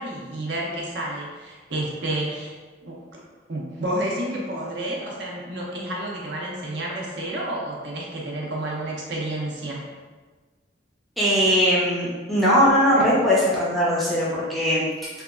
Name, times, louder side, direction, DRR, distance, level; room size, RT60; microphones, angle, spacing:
voice 1, 0.0-2.5 2.8-3.0 3.5-9.8, right 1 dB, 65° right, -2 dB, 0.5 m, -30 dB
voice 2, 11.2-14.8, equal, ahead, -8 dB, 0.4 m, -20 dB
2.8 x 2.2 x 2.4 m, 1.3 s
head